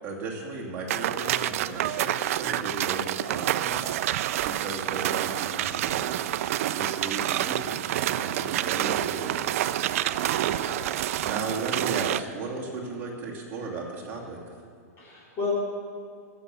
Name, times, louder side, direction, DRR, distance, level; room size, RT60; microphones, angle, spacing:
voice 1, 0.0-3.9 4.4-6.3 6.7-9.7 11.2-14.5, right 3 dB, 20° right, -3 dB, 2.5 m, -35 dB
sound 1, 0.9-12.2, right 13 dB, 55° right, 0.4 m, -28 dB
voice 2, 10.1-10.9 15.0-15.5, left 3 dB, 25° left, -8 dB, 4.0 m, -35 dB
15.5 x 7.0 x 6.9 m, 2.2 s
hypercardioid pair, 145°, 9 cm